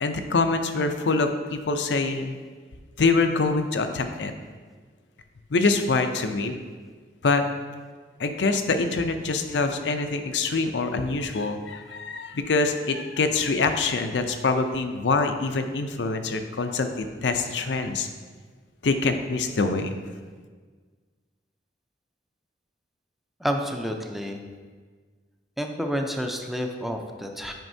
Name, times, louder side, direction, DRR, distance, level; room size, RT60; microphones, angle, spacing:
voice 1, 0.0-2.4 3.0-4.3 5.5-6.6 7.2-7.4 8.2-18.1 18.8-19.9, left 3 dB, 75° left, 7 dB, 0.5 m, -25 dB
voice 2, 23.4-24.4 25.6-27.5, equal, ahead, 3 dB, 0.5 m, -29 dB
9.1 x 5.3 x 2.7 m, 1.5 s
head